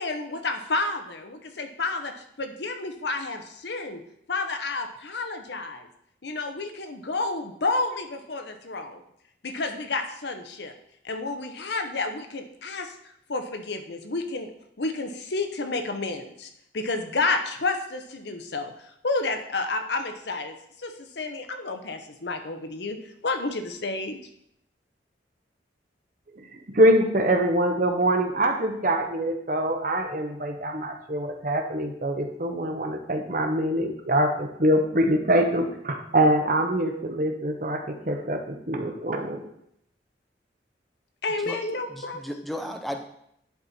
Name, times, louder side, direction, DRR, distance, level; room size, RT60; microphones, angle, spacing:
voice 1, 0.0-4.0 4.3-5.9 6.2-9.0 9.4-10.7 11.0-12.9 13.3-14.5 14.8-18.7 19.0-23.0 23.2-24.2 41.2-42.2, left 3 dB, 70° left, 6 dB, 0.9 m, -30 dB
voice 2, 26.3-39.4, right 1 dB, 45° right, 4 dB, 0.9 m, -24 dB
voice 3, 41.9-43.0, equal, ahead, 5 dB, 0.5 m, -34 dB
10.5 x 4.4 x 4.2 m, 0.73 s
head